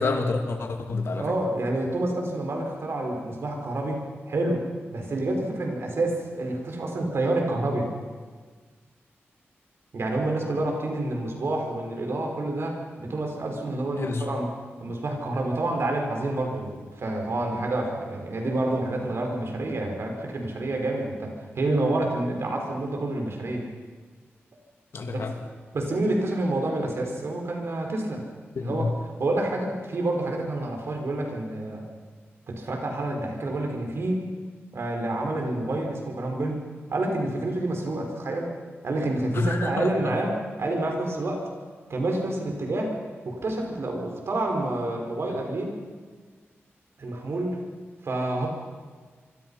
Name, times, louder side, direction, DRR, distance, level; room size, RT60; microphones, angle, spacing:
voice 1, 0.0-1.3 13.9-14.3 24.9-25.4 28.6-28.9 39.3-40.1, left 3 dB, 65° left, 4 dB, 2.7 m, -28 dB
voice 2, 1.2-4.6 4.9-7.9 9.9-14.5 14.8-23.7 25.1-25.3 25.7-28.2 28.6-28.9 29.2-31.8 32.5-34.2 34.7-36.6 36.9-38.5 38.8-41.4 41.9-43.0 43.2-45.8 47.0-47.6 48.0-48.5, right 2 dB, 65° right, 1 dB, 5.3 m, -28 dB
26.0 x 25.0 x 5.8 m, 1.5 s
wide cardioid pair, 130°, 5 cm